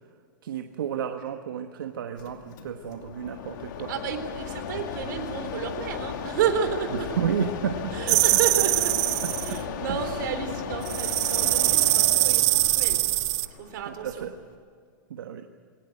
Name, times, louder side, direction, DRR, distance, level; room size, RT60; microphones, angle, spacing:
voice 1, 0.4-3.9 7.1-8.2 9.2-9.6 9.9-10.3 13.9-14.3 15.1-15.4, right 8 dB, 85° right, 6 dB, 1.4 m, -32 dB
Mechanisms, 2.2-14.5, left 7 dB, 65° left, 2.7 m, -36 dB
voice 2, 3.9-7.1 7.9-13.0 13.5-14.3, right 8 dB, 65° right, 7 dB, 3.8 m, -31 dB
sound 1, 8.1-9.6 10.9-13.5, right 20 dB, 50° right, 0.9 m, -22 dB
22.5 x 18.5 x 8.0 m, 2.1 s
hypercardioid pair, 135°, 11 cm